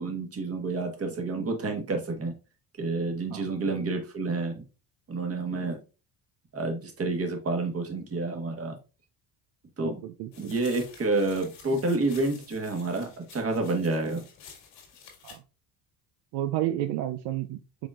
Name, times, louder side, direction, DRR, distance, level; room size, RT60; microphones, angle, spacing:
voice 1, 0.0-2.3 2.8-4.6 5.1-5.8 6.5-8.7 9.8-10.0 10.4-14.2, right 3 dB, 30° right, 4 dB, 1.4 m, -29 dB
voice 2, 9.8-10.6 15.2-15.4 16.3-17.9, right 13 dB, 70° right, 8 dB, 0.5 m, -32 dB
sound 1, 10.3-15.4, left 6 dB, 75° left, 2.0 m, -50 dB
4.9 x 3.8 x 2.4 m, 0.32 s
supercardioid pair, 95°, 44 cm